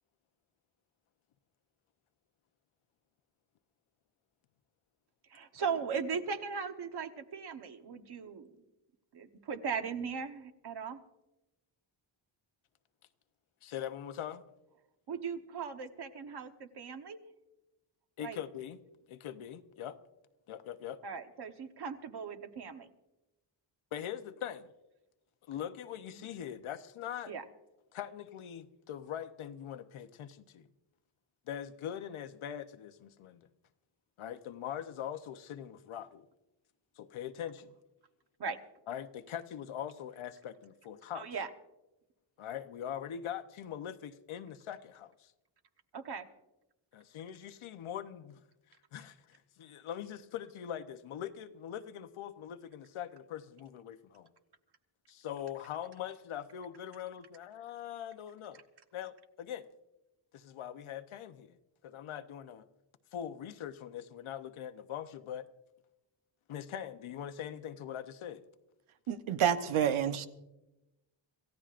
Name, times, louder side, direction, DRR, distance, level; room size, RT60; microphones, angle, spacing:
voice 1, 5.3-8.5 9.1-11.0 15.1-17.2 18.2-18.4 21.0-22.9 27.3-27.4 38.4-38.6 41.1-41.5 45.9-46.3, right 6 dB, 55° right, 1.2 m, -38 dB
voice 2, 13.6-14.4 18.2-18.8 19.1-20.0 20.5-21.0 23.9-24.7 25.5-27.3 27.9-30.7 31.5-33.5 34.2-36.3 37.0-37.7 38.9-41.3 42.4-45.3 46.9-48.4 48.9-54.3 55.1-58.6 58.9-59.7 60.3-61.6 61.8-62.6 63.1-65.5 66.5-68.4, left 10 dB, 85° left, 0.9 m, -42 dB
voice 3, 69.1-70.3, right 9 dB, 85° right, 1.1 m, -29 dB
27.0 x 15.5 x 2.5 m
wide cardioid pair, 165°, 48 cm